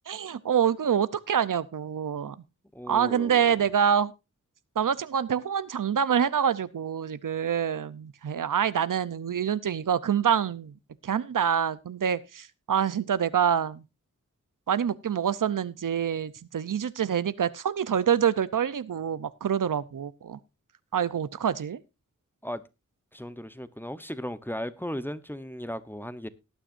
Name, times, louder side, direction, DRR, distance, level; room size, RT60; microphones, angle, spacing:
voice 1, 0.1-2.4 2.9-4.1 4.8-10.7 11.0-13.8 14.7-20.4 20.9-21.8, right 8 dB, 90° right, 0.8 m, -26 dB
voice 2, 2.7-3.6 22.4-22.6 23.1-26.3, equal, 5° left, 0.9 m, -36 dB
19.0 x 9.1 x 2.6 m
wide cardioid pair, 85°, 31 cm